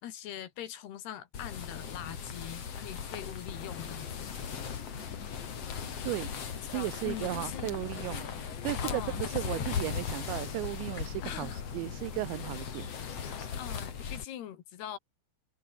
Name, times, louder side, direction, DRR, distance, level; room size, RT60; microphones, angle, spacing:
voice 1, 0.0-4.4 6.7-7.8 8.8-9.8 11.2-11.6 13.6-15.0, left 11 dB, 70° left, 3.7 m, -42 dB
sound 1, 1.3-14.2, left 7 dB, 40° left, 3.0 m, -38 dB
sound 2, 3.5-13.5, left 8 dB, 85° left, 6.1 m, -47 dB
voice 2, 6.7-8.3 8.6-12.9, right 21 dB, 90° right, 3.0 m, -35 dB
omnidirectional pair, 5.0 m